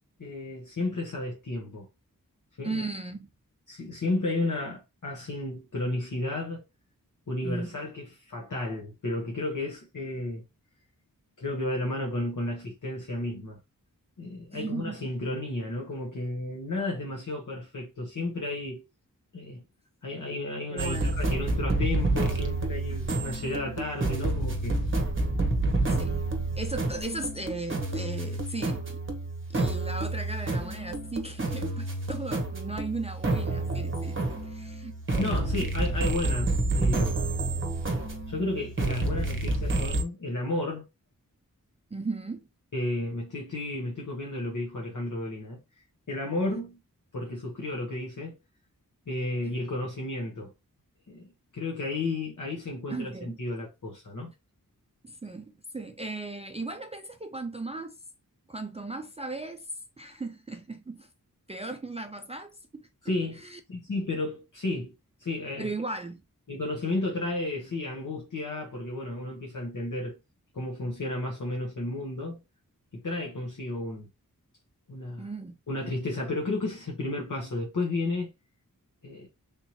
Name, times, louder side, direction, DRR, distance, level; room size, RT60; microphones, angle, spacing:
voice 1, 0.2-1.9 2.6-2.8 3.7-6.6 7.3-10.4 11.4-13.6 14.2-18.9 19.3-19.6 20.0-24.8 35.2-37.2 38.3-40.9 42.7-45.6 46.1-46.8 47.1-48.4 49.1-50.5 51.1-54.3 63.0-63.4 63.7-64.9 65.2-65.7 66.5-70.2 70.5-72.4 72.9-74.1 74.9-75.3 75.7-78.3 79.0-79.3, left 2 dB, 65° left, 1.1 m, -32 dB
voice 2, 2.6-3.3 7.4-7.7 14.5-15.1 20.7-21.5 22.9-23.2 25.9-26.2 26.6-29.0 29.5-35.7 41.9-42.5 49.4-49.6 52.9-53.4 55.0-58.0 58.5-59.7 60.0-61.1 61.5-62.9 63.4-63.6 65.6-66.2 75.2-75.6, right 3 dB, 20° right, 0.4 m, -37 dB
sound 1, 20.8-40.0, right 2 dB, 35° right, 0.9 m, -29 dB
3.6 x 2.9 x 2.8 m
wide cardioid pair, 60°, 34 cm